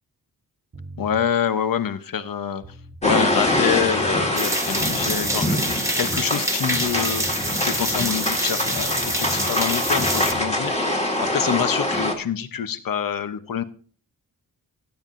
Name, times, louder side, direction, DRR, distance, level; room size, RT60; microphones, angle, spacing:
sound 1, 0.7-1.3 2.3-2.4 2.6-4.3 6.5-6.6 6.9-7.5 8.8-10.5, right 2 dB, 30° right, 1.0 m, -40 dB
voice 1, 1.0-2.8 3.0-5.6 5.9-13.6, left 8 dB, 65° left, 11 dB, 0.9 m, -26 dB
sound 2, 3.0-12.1, left 1 dB, 20° left, 1.7 m, -24 dB
sound 3, 4.4-10.3, right 1 dB, 10° right, 1.1 m, -26 dB
15.5 x 9.2 x 2.6 m, 0.42 s
wide cardioid pair, 125°, 37 cm